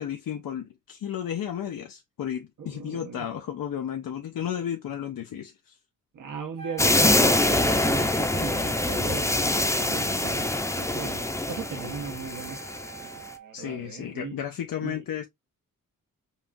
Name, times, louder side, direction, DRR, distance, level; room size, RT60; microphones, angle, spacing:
voice 1, 0.0-5.8 13.5-15.3, left 9 dB, 85° left, 0.6 m, -33 dB
voice 2, 2.6-3.3 6.1-12.6 13.1-14.4 14.8-15.1, right 6 dB, 70° right, 0.9 m, -38 dB
Wind instrument woodwind instrument, 6.6-13.5, right 3 dB, 85° right, 1.6 m, -45 dB
sound 1, 6.8-13.1, left 1 dB, 10° left, 0.6 m, -24 dB
5.5 x 2.4 x 2.5 m
wide cardioid pair, 135°, 33 cm